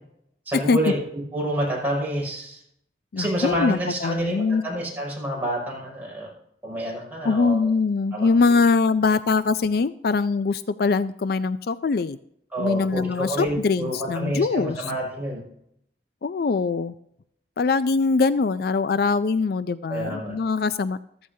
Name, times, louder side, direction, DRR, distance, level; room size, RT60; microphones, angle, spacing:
voice 1, 0.5-1.0 1.3-2.6 3.2-6.3 6.6-7.7 8.1-8.3 12.5-15.4 19.9-20.4, equal, 10° right, -4 dB, 6.1 m, -28 dB
voice 2, 3.1-4.6 7.2-12.2 12.6-14.9 16.2-16.9 17.6-21.0, left 4 dB, 60° left, 14 dB, 0.4 m, -22 dB
15.0 x 14.0 x 2.7 m, 0.74 s
head